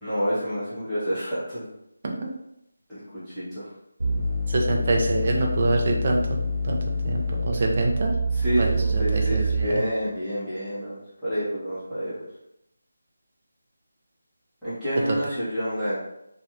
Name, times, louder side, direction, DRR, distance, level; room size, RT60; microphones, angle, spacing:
voice 1, 0.0-1.7 2.9-3.7 8.3-12.1 14.6-16.0, equal, ahead, -19 dB, 1.0 m, -28 dB
sound 1, 4.0-10.0, right 1 dB, 60° right, 0.9 m, -26 dB
voice 2, 4.5-6.8 7.0-8.1 8.6-9.8, right 2 dB, 30° right, 0 dB, 0.5 m, -25 dB
3.1 x 2.3 x 2.8 m, 0.82 s
figure-of-eight pair, 175°, 0 cm